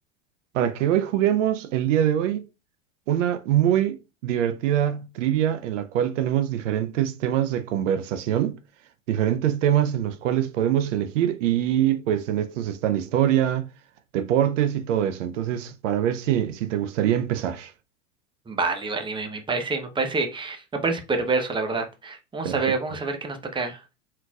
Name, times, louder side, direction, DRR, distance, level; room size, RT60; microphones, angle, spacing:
voice 1, 0.5-2.5 3.1-8.6 9.1-13.7 14.1-17.7 22.4-22.6, right 11 dB, 75° right, 0.7 m, -24 dB
voice 2, 18.5-23.8, right 3 dB, 15° right, 0.8 m, -27 dB
4.4 x 4.0 x 2.3 m
hypercardioid pair, 100°, 37 cm